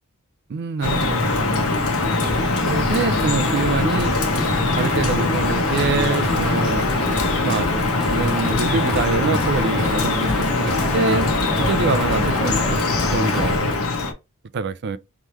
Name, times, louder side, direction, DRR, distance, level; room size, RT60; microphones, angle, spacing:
voice 1, 0.5-1.7 2.6-4.2 4.8-6.9 7.4-7.7 8.1-11.3 11.6-13.8 14.5-15.0, right 4 dB, 50° right, 0.4 m, -25 dB
Drip, 0.8-14.1, left 3 dB, 70° left, 1.1 m, -22 dB
sound 1, 2.0-13.6, left 1 dB, ahead, 1.2 m, -29 dB
3.7 x 3.1 x 4.3 m
head